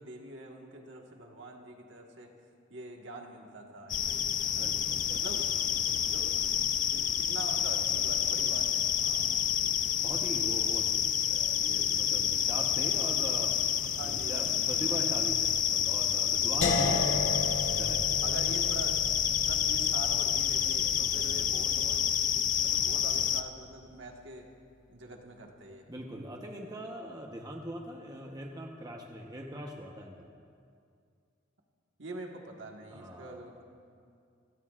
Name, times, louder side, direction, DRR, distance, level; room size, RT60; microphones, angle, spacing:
voice 1, 0.0-2.3 2.7-4.7 5.1-5.5 5.9-8.9 13.9-15.0 16.9-17.1 18.2-24.5 24.9-25.9 32.0-33.6, right 2 dB, 65° right, 1 dB, 1.6 m, -45 dB
sound 1, 3.9-23.4, left 9 dB, 40° left, 0.5 m, -29 dB
voice 2, 4.4-5.4 5.9-6.0 9.0-9.5 10.0-13.6 14.0-18.2 21.1-21.6 25.9-30.3 32.9-33.6, equal, 20° right, 1 dB, 1.0 m, -42 dB
sound 2, 16.6-22.5, left 3 dB, 70° left, 1.5 m, -35 dB
26.5 x 16.5 x 2.5 m, 2.3 s
head